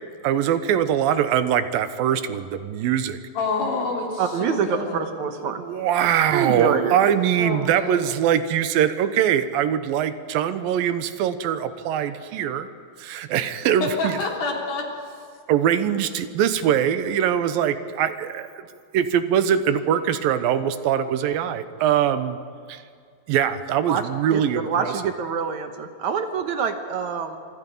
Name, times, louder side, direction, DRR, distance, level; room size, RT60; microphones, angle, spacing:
voice 1, 0.2-3.2 5.5-12.6 13.0-14.2 15.5-18.6 18.9-22.4 22.7-22.8 23.3-24.9, right 9 dB, 80° right, 11 dB, 2.7 m, -22 dB
voice 2, 3.3-5.0 7.4-8.0 13.8-14.9, left 3 dB, 80° left, 0 dB, 5.1 m, -27 dB
voice 3, 4.2-5.6 6.3-7.0 7.7-7.8 23.9-24.0 24.3-27.4, right 6 dB, 65° right, 7 dB, 2.1 m, -25 dB
27.0 x 24.5 x 5.4 m, 2.1 s
omnidirectional pair, 4.2 m